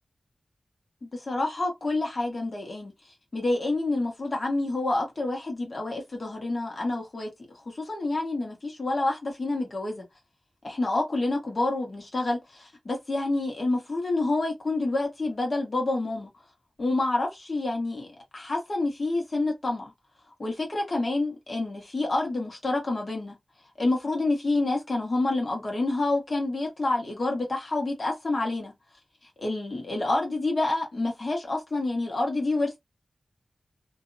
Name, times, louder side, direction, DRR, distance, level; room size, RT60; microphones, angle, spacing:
voice 1, 1.0-2.9 3.3-10.0 10.6-16.3 16.8-19.9 20.4-23.4 23.8-28.7 29.4-32.8, left 2 dB, 50° left, 1.2 m, -28 dB
2.6 x 2.1 x 2.6 m
wide cardioid pair, 90°, 0 cm